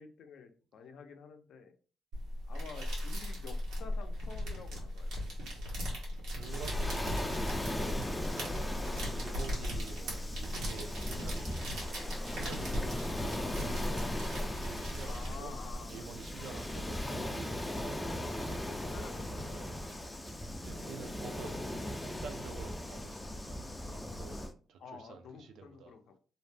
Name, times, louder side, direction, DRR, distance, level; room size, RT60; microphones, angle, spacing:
voice 1, 0.0-1.7 2.5-5.1 5.9-6.0 15.0-17.1 17.7-20.2 24.8-26.2, left 5 dB, 70° left, 0.5 m, -51 dB
sound 1, 2.1-15.7, equal, 90° right, 1.1 m, -37 dB
voice 2, 6.1-7.5 9.1-11.6 12.2-14.0 14.3-15.5 15.9-18.8 19.5-19.8 20.6-21.8 22.2-25.9, right 6 dB, 75° right, 0.4 m, -49 dB
Waves surf, 6.5-24.5, left 1 dB, 10° left, 0.4 m, -39 dB
sound 2, 13.1-21.1, right 2 dB, 25° right, 0.6 m, -55 dB
2.5 x 2.1 x 3.2 m
cardioid pair, 90°, 0 cm